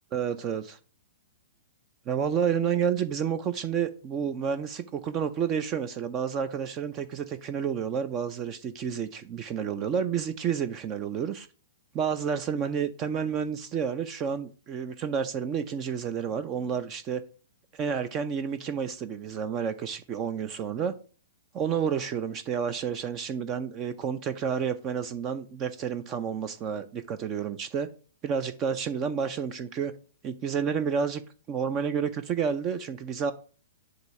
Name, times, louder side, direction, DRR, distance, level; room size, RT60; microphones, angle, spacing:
voice 1, 0.1-0.8 2.1-11.5 11.9-17.2 17.7-21.0 21.5-27.9 28.2-29.9 30.2-31.2 31.5-33.3, right 7 dB, 30° right, 0.5 m, -30 dB
7.8 x 2.7 x 5.6 m
hypercardioid pair, 115°, 0 cm